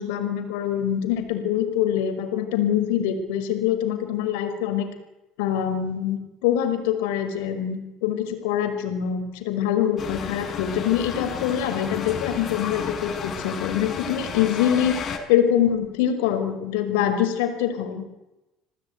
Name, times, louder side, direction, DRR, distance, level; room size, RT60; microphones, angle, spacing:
voice 1, 0.0-4.9 5.4-18.0, left 10 dB, 75° left, 7 dB, 5.0 m, -24 dB
sound 1, 10.0-15.2, left 6 dB, 45° left, 5.7 m, -32 dB
27.5 x 18.5 x 9.5 m, 0.98 s
hypercardioid pair, 70°, 0 cm